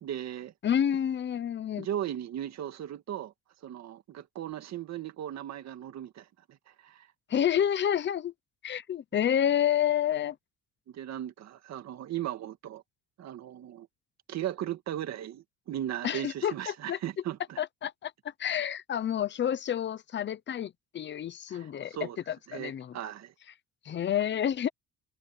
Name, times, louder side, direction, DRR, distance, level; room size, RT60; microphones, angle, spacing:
voice 1, 0.0-0.5 1.8-3.3 3.6-7.1 9.4-9.5 10.9-12.8 13.2-13.9 14.3-17.6 21.5-22.2 22.5-23.3, right 11 dB, 50° right, 2.0 m, -37 dB
voice 2, 0.6-1.9 7.3-8.3 8.6-10.4 16.0-17.0 17.6-18.1 18.4-21.9 22.3-23.0 23.9-24.7, left 9 dB, 35° left, 0.8 m, -29 dB
cardioid pair, 165°, 33 cm